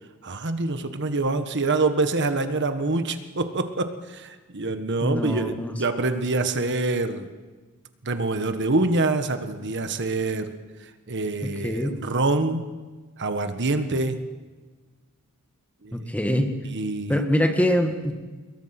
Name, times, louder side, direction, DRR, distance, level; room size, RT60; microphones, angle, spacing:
voice 1, 0.2-7.3 8.0-10.5 10.8-12.7 13.2-14.2 15.8-16.1 16.7-17.2, right 2 dB, 55° right, 9 dB, 1.5 m, -26 dB
voice 2, 5.0-5.8 11.4-12.0 15.9-16.5 17.1-18.1, equal, 5° left, 5 dB, 1.8 m, -24 dB
27.5 x 22.0 x 6.0 m, 1.3 s
head